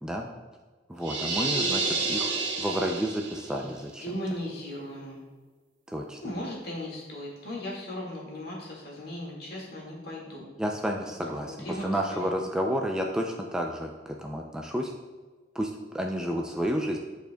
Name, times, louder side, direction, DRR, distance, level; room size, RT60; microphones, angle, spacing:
voice 1, 0.9-2.3 2.6-4.0 5.9-6.2 10.6-11.6 11.8-14.9 15.6-17.0, equal, 5° right, 1 dB, 0.3 m, -30 dB
sound 1, 1.0-3.6, right 3 dB, 80° right, 1.1 m, -29 dB
voice 2, 4.0-5.2 6.2-10.5 11.0-11.1 11.6-12.4, left 1 dB, 55° left, -3 dB, 1.8 m, -37 dB
10.5 x 4.4 x 2.2 m, 1.3 s
head